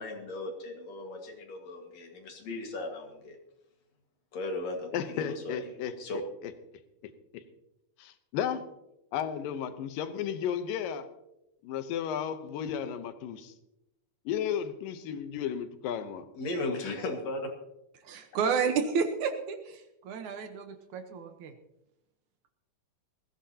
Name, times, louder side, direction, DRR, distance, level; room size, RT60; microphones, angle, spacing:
voice 1, 0.0-3.4 4.3-6.2 16.4-17.4, left 2 dB, 55° left, 3 dB, 2.8 m, -37 dB
voice 2, 4.9-6.5 7.3-7.4 8.0-8.6 9.1-11.1 11.6-13.5 14.3-16.3, left 8 dB, 85° left, 10 dB, 2.6 m, -34 dB
voice 3, 18.0-21.5, right 6 dB, 70° right, 7 dB, 2.3 m, -31 dB
20.0 x 15.0 x 2.9 m, 0.88 s
omnidirectional pair, 3.8 m